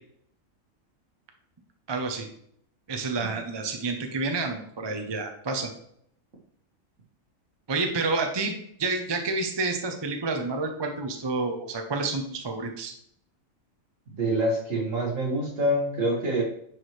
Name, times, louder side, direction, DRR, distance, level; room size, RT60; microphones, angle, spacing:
voice 1, 1.9-2.3 2.9-5.7 7.7-8.5 8.8-12.9, right 3 dB, 25° right, 4 dB, 0.7 m, -29 dB
voice 2, 14.2-16.4, right 1 dB, 70° right, -1 dB, 2.1 m, -26 dB
9.9 x 4.8 x 3.2 m, 0.69 s
omnidirectional pair, 1.4 m